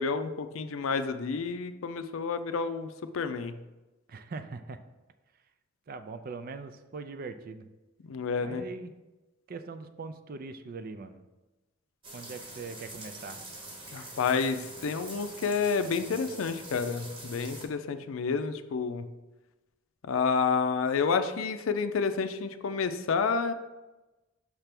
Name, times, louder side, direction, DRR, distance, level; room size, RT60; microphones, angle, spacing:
voice 1, 0.0-3.5 8.0-8.6 13.9-19.1 20.0-23.5, left 5 dB, 85° left, 10 dB, 0.4 m, -29 dB
voice 2, 4.1-4.8 5.9-7.7 8.4-8.9 9.5-11.2 12.1-13.4, right 4 dB, 45° right, 10 dB, 0.4 m, -41 dB
sound 1, 12.0-17.7, right 2 dB, 25° right, 1.0 m, -45 dB
5.9 x 3.4 x 5.8 m, 1.1 s
head